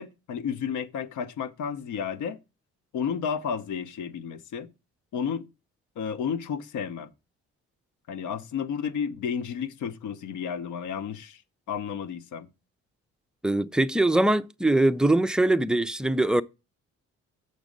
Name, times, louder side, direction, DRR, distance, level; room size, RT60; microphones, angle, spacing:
voice 1, 0.0-2.4 2.9-4.7 5.1-5.5 6.0-7.1 8.1-11.4 11.7-12.5, left 7 dB, 75° left, 0.8 m, -32 dB
voice 2, 13.4-16.4, right 2 dB, 5° right, 0.3 m, -22 dB
6.6 x 6.2 x 5.1 m
cardioid pair, 90°, 30 cm